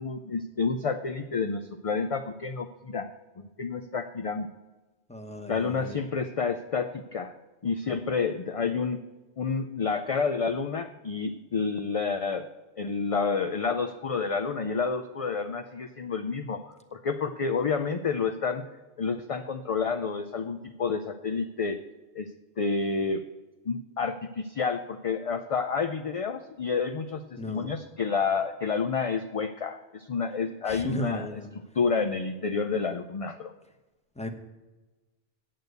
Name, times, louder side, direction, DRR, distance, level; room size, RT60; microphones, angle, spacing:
voice 1, 0.0-3.1 3.4-4.5 5.5-7.3 7.6-9.0 9.4-12.5 12.8-18.6 19.0-21.8 22.1-22.3 22.6-23.2 23.7-31.3 31.7-33.5, left 5 dB, 45° left, 8 dB, 0.5 m, -29 dB
voice 2, 5.1-6.0 27.4-27.7 30.6-31.5 34.1-34.3, right 1 dB, 5° left, 5 dB, 1.0 m, -35 dB
8.9 x 8.1 x 7.9 m, 1.2 s
omnidirectional pair, 1.1 m